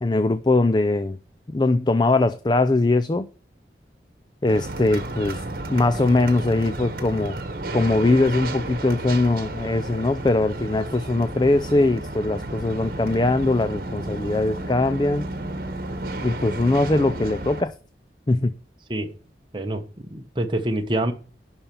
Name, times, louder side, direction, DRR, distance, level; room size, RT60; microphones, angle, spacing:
voice 1, 0.0-1.2 1.5-3.3 4.4-5.4 5.7-7.4 7.7-15.2 16.2-17.7 18.3-18.6, left 2 dB, 25° left, 0.4 m, -21 dB
sound 1, 4.5-17.6, right 2 dB, 55° right, 1.4 m, -32 dB
voice 2, 19.5-21.1, right 1 dB, 25° right, 1.0 m, -26 dB
11.0 x 4.4 x 6.9 m
head